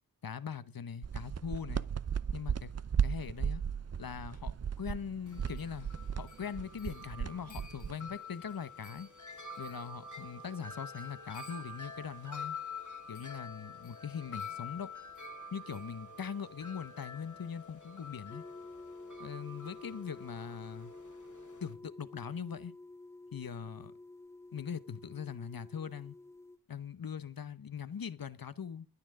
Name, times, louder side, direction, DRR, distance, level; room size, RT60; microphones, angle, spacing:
voice 1, 0.2-1.9 2.3-2.7 3.0-3.6 4.0-5.9 6.2-9.1 9.6-12.6 13.1-14.9 15.5-18.4 19.2-20.9 21.6-22.7 23.3-23.9 24.5-26.2 26.7-28.9, left 7 dB, 75° left, 0.9 m, -41 dB
sound 1, 1.0-8.2, right 7 dB, 45° right, 0.6 m, -36 dB
Wind chime, 5.3-21.7, left 3 dB, 60° left, 1.7 m, -47 dB
sound 2, 18.3-26.6, left 2 dB, 10° left, 0.6 m, -50 dB
22.5 x 8.8 x 3.7 m
wide cardioid pair, 60°, 35 cm